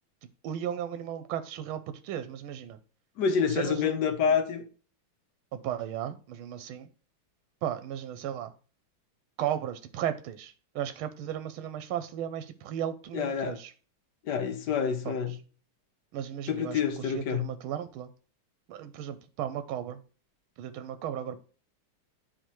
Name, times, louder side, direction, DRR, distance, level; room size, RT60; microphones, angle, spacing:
voice 1, 0.4-2.8 3.5-4.0 5.5-6.9 7.6-8.5 9.4-13.7 15.0-15.2 16.1-18.1 18.7-20.0 20.6-21.4, right 10 dB, 85° right, 1.4 m, -35 dB
voice 2, 3.2-4.6 13.1-13.6 14.3-15.4 16.5-17.5, left 6 dB, 65° left, 1.3 m, -27 dB
10.0 x 4.3 x 3.0 m
omnidirectional pair, 2.3 m